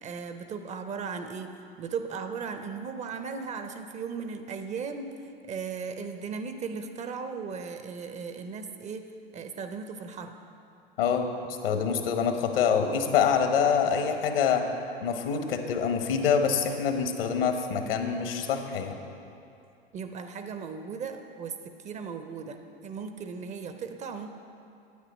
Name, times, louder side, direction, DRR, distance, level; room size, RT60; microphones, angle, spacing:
voice 1, 0.0-9.1 9.3-10.4 19.9-24.3, right 5 dB, 25° right, 7 dB, 0.5 m, -37 dB
voice 2, 11.6-14.6 15.0-19.0, left 7 dB, 70° left, 6 dB, 1.1 m, -25 dB
9.3 x 9.0 x 4.3 m, 2.6 s
figure-of-eight pair, 85°, 30 cm